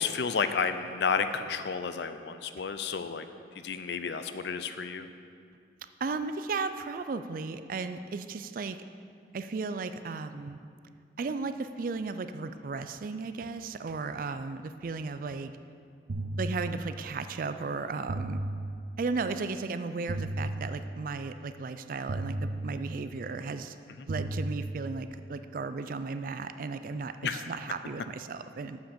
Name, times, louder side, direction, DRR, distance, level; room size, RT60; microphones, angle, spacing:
voice 1, 0.0-3.2 3.6-5.1 27.2-27.4, left 5 dB, 65° left, 10 dB, 0.5 m, -31 dB
voice 2, 6.0-8.8 9.3-10.6 11.2-15.5 16.4-18.4 19.0-23.8 24.1-28.8, right 4 dB, 45° right, 11 dB, 0.3 m, -35 dB
sound 1, 16.1-17.3 18.1-19.3 20.1-21.3 22.1-23.3 24.1-25.3, right 1 dB, 75° right, 0.7 m, -35 dB
7.2 x 6.2 x 6.9 m, 2.3 s
head